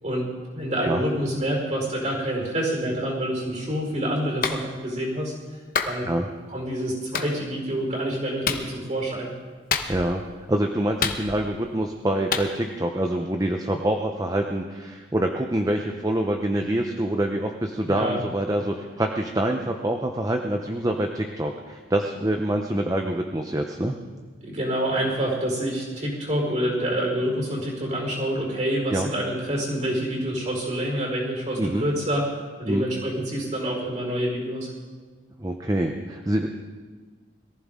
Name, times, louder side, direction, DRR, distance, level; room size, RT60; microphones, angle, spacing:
voice 1, 0.0-5.3 5.8-6.1 6.5-9.3 17.8-18.2 24.4-34.7, equal, 40° right, -2 dB, 4.8 m, -27 dB
Clapping, 4.4-4.6 5.7-6.0 7.1-7.3 8.4-8.7 9.7-10.2 11.0-11.6 12.3-12.5, left 6 dB, 50° left, 1.1 m, -26 dB
voice 2, 9.9-10.2 10.5-24.0 28.9-29.1 31.6-31.9 32.7-32.8 35.4-36.5, right 1 dB, 20° right, 3 dB, 0.7 m, -26 dB
22.0 x 15.0 x 3.7 m, 1.5 s
head